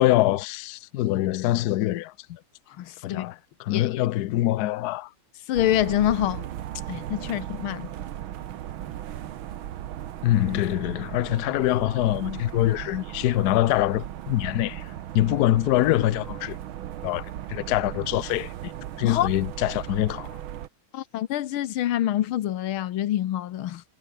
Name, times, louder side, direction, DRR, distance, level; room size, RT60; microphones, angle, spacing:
voice 1, 0.0-2.4 3.0-5.1 10.2-14.9 15.1-16.6 17.0-20.3, left 15 dB, 70° left, 1.0 m, -24 dB
voice 2, 2.8-3.2 3.7-4.0 5.5-6.4 6.9-7.9 19.0-19.3 20.9-23.8, left 12 dB, 90° left, 1.8 m, -26 dB
sound 1, 5.5-20.7, right 12 dB, 80° right, 1.8 m, -37 dB
omnidirectional pair, 2.2 m